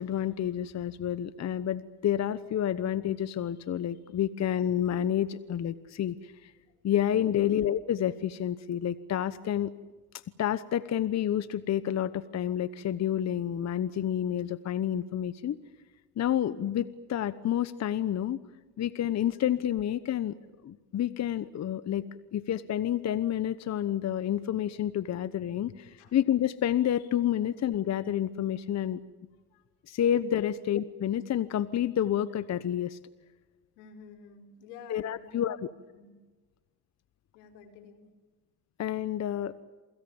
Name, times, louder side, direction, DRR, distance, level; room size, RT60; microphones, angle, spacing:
voice 1, 0.0-6.5 6.8-9.7 10.4-15.6 16.2-18.4 18.8-20.4 20.6-22.0 22.3-29.0 29.9-33.0 34.9-35.7 38.8-39.6, left 10 dB, 35° left, 15 dB, 1.1 m, -29 dB
voice 2, 33.8-35.5 35.9-36.1 37.3-38.1, left 9 dB, 80° left, 7 dB, 4.6 m, -47 dB
28.0 x 25.0 x 7.1 m, 1.2 s
supercardioid pair, 85°, 44 cm